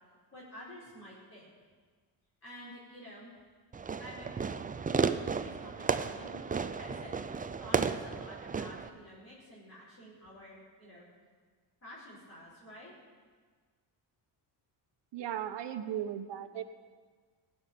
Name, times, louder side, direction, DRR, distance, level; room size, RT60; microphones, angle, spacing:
voice 1, 0.3-1.5 2.4-3.3 4.0-4.3 5.4-11.0 11.8-12.9, left 1 dB, 30° left, -8 dB, 4.8 m, -50 dB
Fireworks, 3.7-8.9, right 5 dB, 20° right, 0.5 m, -33 dB
voice 2, 15.1-16.6, right 10 dB, 70° right, 9 dB, 1.1 m, -36 dB
16.5 x 6.0 x 9.2 m, 1.5 s
cardioid pair, 100°, 45 cm